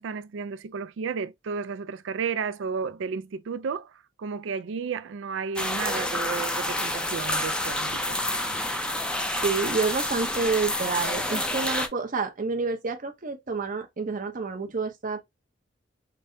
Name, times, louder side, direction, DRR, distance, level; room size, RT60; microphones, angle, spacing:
voice 1, 0.0-8.2 8.5-8.6, right 5 dB, 65° right, 0.4 m, -33 dB
sound 1, 5.6-11.9, left 1 dB, 5° left, 0.5 m, -28 dB
voice 2, 9.3-15.2, right 4 dB, 45° right, 0.8 m, -29 dB
5.3 x 2.2 x 2.7 m
head